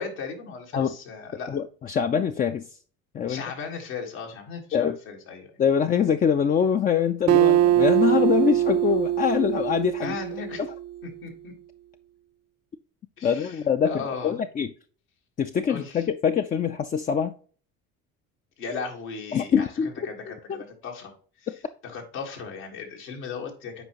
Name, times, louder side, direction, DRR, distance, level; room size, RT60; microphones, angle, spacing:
voice 1, 0.0-1.6 3.3-5.5 10.0-10.6 11.2-11.5 13.2-13.6 13.8-14.4 15.7-16.0 18.6-19.7 20.0-21.1 21.8-23.8, left 5 dB, 80° left, 1.7 m, -36 dB
voice 2, 1.5-2.7 3.1-3.4 4.7-5.0 5.6-10.2 13.2-14.7 15.4-17.3 19.3-20.1 20.5-20.6 21.5-21.6, left 7 dB, 25° left, 0.3 m, -24 dB
Acoustic guitar, 7.3-10.9, right 12 dB, 40° right, 0.5 m, -22 dB
8.0 x 4.9 x 2.9 m
hypercardioid pair, 55°, 41 cm